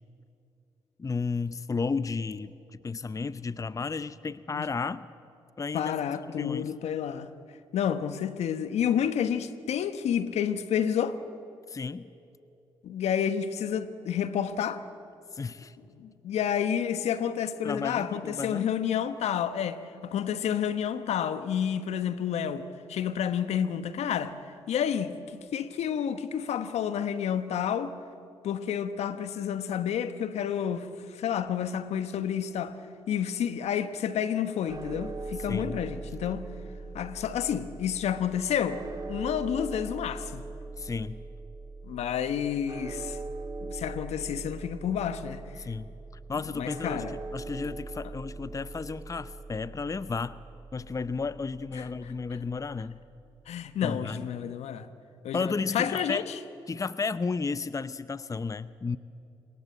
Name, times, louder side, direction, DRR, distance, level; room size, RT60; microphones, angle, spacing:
voice 1, 1.0-2.5 2.8-5.1 5.6-6.0 6.4-6.7 11.7-12.1 15.3-15.8 17.6-18.7 35.4-35.8 40.8-41.2 45.6-45.9 46.3-47.0 47.3-50.4 50.7-53.0 53.8-54.2 55.3-56.2 56.7-59.0, left 4 dB, 30° left, 0.7 m, -33 dB
voice 2, 5.7-7.3 7.7-11.2 12.8-14.8 16.0-24.4 24.7-27.9 28.4-32.8 33.1-36.5 36.9-38.8 39.1-40.4 41.8-43.2 43.6-45.4 46.5-47.1 51.8-51.9 53.5-54.9 55.2-56.3, left 8 dB, 70° left, 1.2 m, -30 dB
sound 1, 34.7-52.9, right 3 dB, 35° right, 2.7 m, -41 dB
26.0 x 22.0 x 8.1 m
hypercardioid pair, 50°, 11 cm